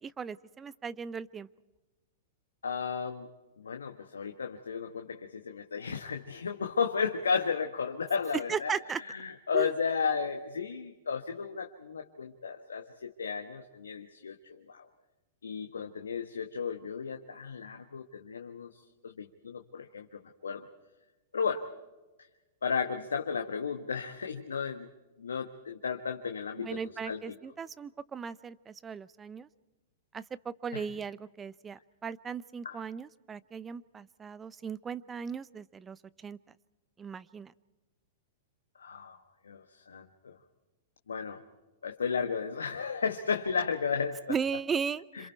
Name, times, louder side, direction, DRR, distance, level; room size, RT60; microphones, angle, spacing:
voice 1, 0.0-1.5 8.5-9.0 9.5-9.7 26.6-29.5 30.1-36.4 37.0-37.5 44.3-45.3, right 6 dB, 20° right, 18 dB, 0.7 m, -37 dB
voice 2, 2.6-3.3 3.6-14.9 15.4-20.7 21.3-21.6 22.6-24.9 25.2-26.8 27.0-27.3 30.7-30.8 32.6-32.8 38.8-39.2 39.4-40.4 41.1-41.4 41.8-44.2 45.1-45.3, left 6 dB, 80° left, 4 dB, 1.3 m, -34 dB
27.5 x 27.0 x 4.5 m, 1.1 s
hypercardioid pair, 105°, 0 cm